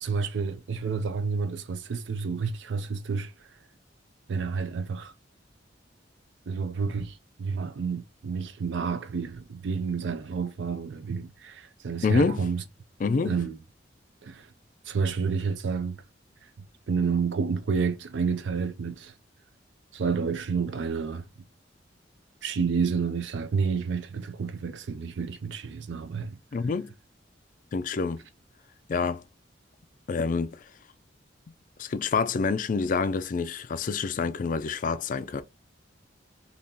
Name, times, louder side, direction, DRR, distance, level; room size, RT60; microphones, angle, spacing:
voice 1, 0.0-3.6 4.3-5.1 6.5-12.6 13.3-13.6 14.2-14.5 14.8-16.0 16.9-19.1 19.9-21.3 22.4-26.4, right 5 dB, 75° right, 0.4 m, -30 dB
voice 2, 12.0-12.5 13.0-13.4 26.5-26.9 27.7-28.2 28.9-29.2 30.1-30.7 31.8-35.4, left 4 dB, 45° left, 0.3 m, -27 dB
3.7 x 2.8 x 2.7 m
head